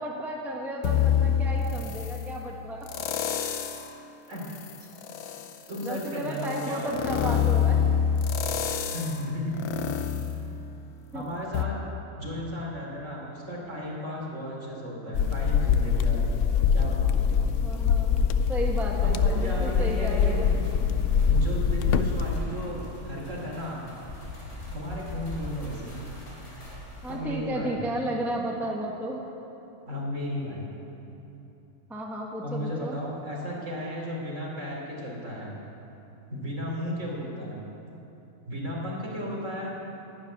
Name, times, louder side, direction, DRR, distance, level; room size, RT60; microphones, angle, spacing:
voice 1, 0.0-2.9 5.8-7.8 11.1-11.2 16.4-16.5 17.6-18.2 18.5-20.6 27.0-29.2 31.9-33.0, right 1 dB, ahead, -2 dB, 1.3 m, -33 dB
sound 1, 0.8-2.2 2.9-3.9 4.4-11.1 11.5-11.6, left 8 dB, 85° left, 1.4 m, -27 dB
voice 2, 4.3-4.9 5.7-7.2 8.9-9.8 11.1-11.8 12.2-16.3 16.7-17.3 19.0-20.5 21.3-23.9 24.7-26.0 27.1-27.8 29.9-30.7 32.4-35.6 36.3-37.6 38.5-39.7, equal, 50° right, -3 dB, 3.8 m, -34 dB
sound 2, 15.1-22.4, left 6 dB, 65° left, 0.9 m, -24 dB
sound 3, 18.8-27.1, left 1 dB, 45° left, 3.9 m, -40 dB
12.0 x 12.0 x 9.5 m, 3.0 s
omnidirectional pair, 1.6 m